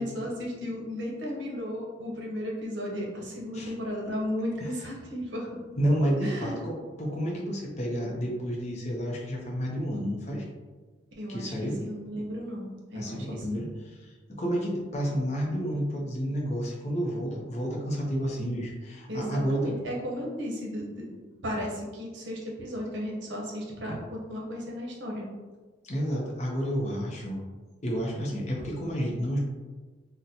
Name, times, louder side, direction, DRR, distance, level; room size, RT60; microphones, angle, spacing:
voice 1, 0.0-5.6 6.2-6.7 11.2-11.5 11.8-13.4 19.1-21.2 21.4-25.3, equal, 70° right, -2 dB, 0.8 m, -34 dB
voice 2, 5.8-10.5 11.3-11.9 12.9-19.8 25.8-27.5 27.8-29.4, equal, 35° left, -2 dB, 0.5 m, -30 dB
4.0 x 2.1 x 2.7 m, 1.3 s
head